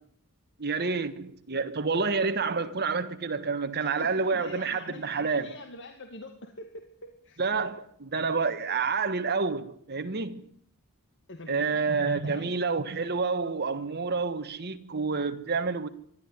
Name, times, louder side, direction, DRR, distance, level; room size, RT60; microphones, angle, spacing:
voice 1, 0.6-5.5 7.4-10.4 11.5-15.9, right 4 dB, 45° right, 1.5 m, -29 dB
voice 2, 3.8-7.4 11.3-11.9 12.2-12.6, left 2 dB, 55° left, 2.2 m, -45 dB
25.0 x 12.5 x 9.7 m
head